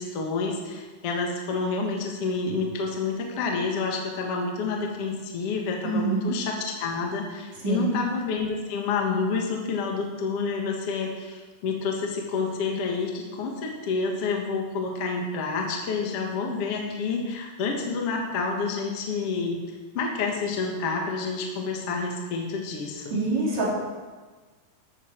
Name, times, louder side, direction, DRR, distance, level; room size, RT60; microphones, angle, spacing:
voice 1, 0.0-23.2, left 4 dB, 50° left, 1 dB, 2.2 m, -29 dB
voice 2, 5.8-6.3 7.6-7.9 23.1-23.7, right 3 dB, 50° right, -5 dB, 4.5 m, -25 dB
13.5 x 13.5 x 4.5 m, 1.3 s
omnidirectional pair, 4.1 m